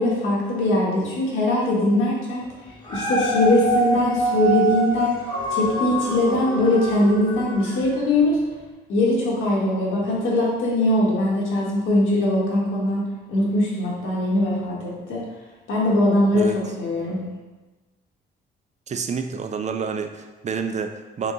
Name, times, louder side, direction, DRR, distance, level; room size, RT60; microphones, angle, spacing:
voice 1, 0.0-2.5 2.9-5.1 5.5-8.4 8.9-15.2 15.7-17.2, left 1 dB, 80° left, -4 dB, 1.5 m, -21 dB
Dog, 2.7-8.0 8.5-8.6, right 1 dB, 25° left, 1.2 m, -26 dB
voice 2, 18.9-21.3, right 6 dB, 35° right, 6 dB, 0.4 m, -29 dB
3.8 x 3.6 x 3.8 m, 1.2 s
cardioid pair, 90°, 20 cm